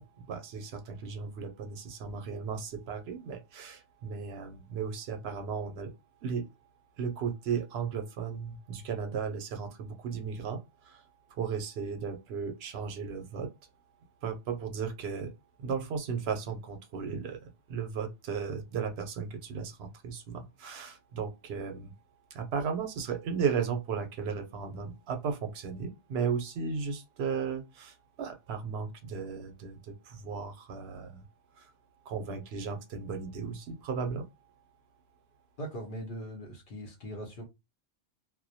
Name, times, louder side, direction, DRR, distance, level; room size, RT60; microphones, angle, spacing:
voice 1, 0.3-5.9 6.2-6.5 7.0-10.6 10.8-11.0 11.3-13.5 14.2-15.3 15.6-17.4 17.7-21.9 22.3-31.2 31.6-31.7 32.1-34.2, right 6 dB, 70° right, 0.8 m, -35 dB
voice 2, 35.6-37.4, equal, 55° left, 0.7 m, -40 dB
2.2 x 2.1 x 2.6 m
omnidirectional pair, 1.1 m